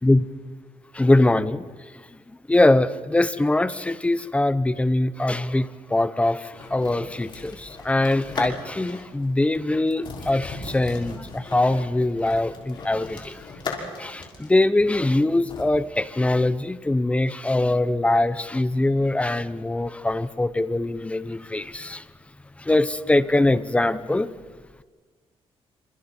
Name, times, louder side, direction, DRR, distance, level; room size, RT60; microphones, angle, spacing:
voice 1, 0.9-1.7 2.5-13.4 14.0-22.0 22.6-24.3, left 2 dB, 10° left, 13 dB, 0.9 m, -22 dB
sound 1, 6.5-9.1 9.4-9.6 9.9-15.6, left 3 dB, 50° left, 6.0 m, -37 dB
29.5 x 27.0 x 4.6 m, 1.4 s
cardioid pair, 115°, 11 cm